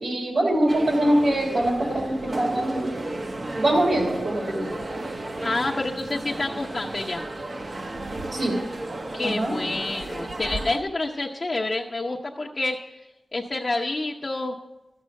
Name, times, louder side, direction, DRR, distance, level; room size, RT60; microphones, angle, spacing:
voice 1, 0.0-2.9 3.6-4.7 8.3-8.5 9.2-9.5, right 1 dB, 70° right, -2 dB, 3.5 m, -23 dB
sound 1, 0.7-10.8, right 2 dB, 40° right, 0.9 m, -33 dB
voice 2, 5.4-7.2 9.1-12.8 13.3-14.5, left 2 dB, 40° left, -3 dB, 0.8 m, -28 dB
13.5 x 7.7 x 6.4 m, 1.0 s
wide cardioid pair, 100°, 0 cm